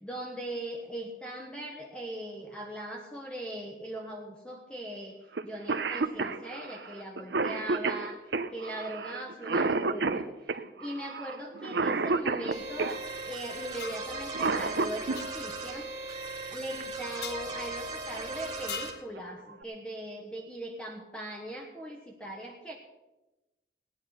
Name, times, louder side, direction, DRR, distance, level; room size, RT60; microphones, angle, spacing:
voice 1, 0.0-5.2 5.4-8.2 8.5-10.3 10.8-13.0 13.3-15.9 16.5-22.7, right 1 dB, 5° left, 0 dB, 1.2 m, -40 dB
Cough, 5.4-5.5 5.7-13.0 14.1-15.2 16.8-16.9 17.9-18.2 18.7-18.8 19.2-19.6, right 3 dB, 75° right, 0.8 m, -30 dB
sound 1, 12.5-18.9, right 2 dB, 20° right, 2.4 m, -38 dB
sound 2, 13.8-14.1 15.2-15.3 17.2-17.4 18.7-19.1, left 8 dB, 65° left, 0.6 m, -39 dB
18.0 x 10.0 x 5.8 m, 1.0 s
head